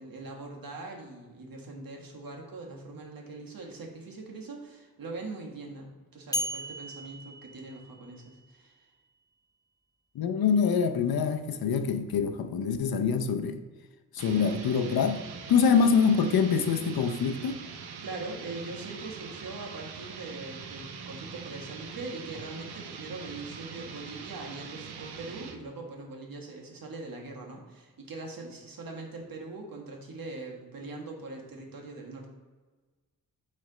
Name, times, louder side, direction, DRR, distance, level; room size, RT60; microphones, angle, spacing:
voice 1, 0.0-8.9 18.0-32.3, right 3 dB, 65° right, 0 dB, 1.5 m, -42 dB
sound 1, 6.3-8.4, equal, 10° left, 0.4 m, -36 dB
voice 2, 10.1-13.6 14.1-15.2 15.5-17.6, left 6 dB, 70° left, 9 dB, 0.6 m, -25 dB
sound 2, 14.2-25.6, right 6 dB, 85° right, 0.7 m, -43 dB
6.2 x 3.4 x 4.9 m, 1.3 s
cardioid pair, 65°, 37 cm